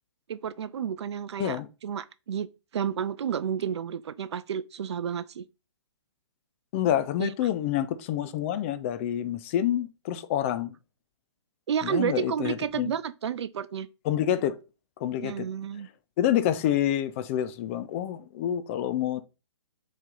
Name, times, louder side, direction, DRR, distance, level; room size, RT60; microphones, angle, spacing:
voice 1, 0.3-5.5 7.2-7.3 11.7-13.9 15.2-15.9, right 8 dB, 70° right, 0.4 m, -31 dB
voice 2, 6.7-10.7 11.8-12.9 14.0-14.6 15.0-15.5 16.2-19.2, left 11 dB, 25° left, 0.4 m, -27 dB
4.3 x 3.1 x 3.8 m
hypercardioid pair, 135°, 15 cm